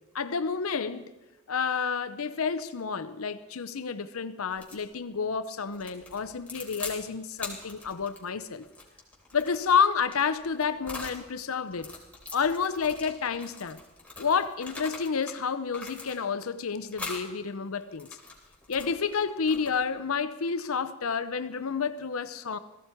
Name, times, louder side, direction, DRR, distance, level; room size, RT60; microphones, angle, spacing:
voice 1, 0.1-1.1 1.5-8.6 9.3-11.9 12.3-13.8 14.2-18.1 18.7-22.6, left 6 dB, 80° left, 0.7 m, -29 dB
sound 1, 4.5-4.9 5.7-7.0 7.4-11.2 11.7-15.4 15.7-16.5 16.9-17.3 17.8-19.9, left 3 dB, 5° left, 3.1 m, -42 dB
17.0 x 15.0 x 4.5 m
head